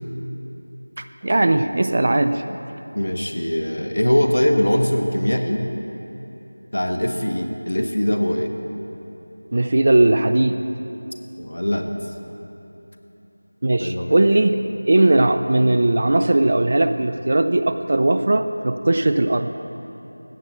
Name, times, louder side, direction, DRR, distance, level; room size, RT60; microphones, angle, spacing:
voice 1, 1.0-2.4 9.5-10.6 13.6-14.6 14.9-19.5, right 2 dB, 40° right, 9 dB, 0.4 m, -18 dB
voice 2, 2.9-5.6 6.7-8.5 11.4-11.9 13.8-14.2, left 1 dB, 70° left, 5 dB, 1.2 m, -21 dB
15.0 x 7.8 x 4.4 m, 3.0 s
figure-of-eight pair, 175°, 0 cm